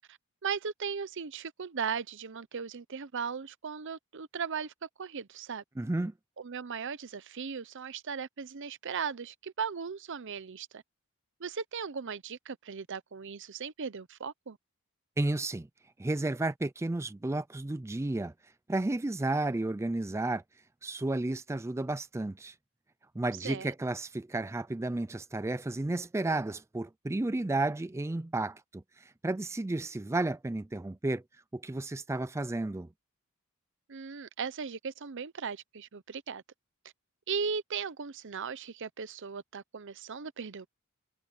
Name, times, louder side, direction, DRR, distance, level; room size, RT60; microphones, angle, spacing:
voice 1, 0.1-5.6 6.4-10.8 11.4-14.6 23.4-23.7 33.9-36.4 37.3-40.7, right 6 dB, 60° right, 0.7 m, -37 dB
voice 2, 5.8-6.1 15.2-15.7 16.0-18.3 18.7-20.4 20.8-22.5 23.2-31.2 31.5-32.9, right 2 dB, 15° right, 0.4 m, -32 dB
head